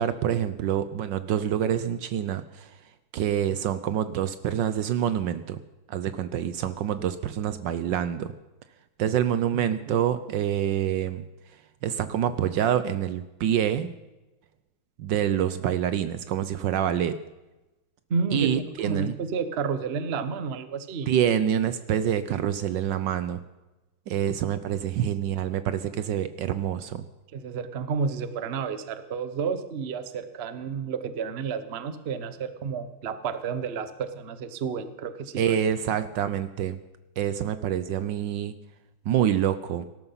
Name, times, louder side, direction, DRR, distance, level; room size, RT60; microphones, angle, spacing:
voice 1, 0.0-2.8 3.1-5.6 5.9-8.3 9.0-11.2 11.8-13.9 15.0-17.1 18.3-19.1 21.1-23.4 24.1-27.0 35.4-36.8 37.2-38.5 39.1-39.8, right 10 dB, 70° right, 13 dB, 1.3 m, -26 dB
voice 2, 18.1-21.1 25.0-25.1 27.3-35.6 36.0-36.1, right 5 dB, 40° right, 11 dB, 1.0 m, -31 dB
18.5 x 12.5 x 5.6 m, 1.1 s
omnidirectional pair, 2.2 m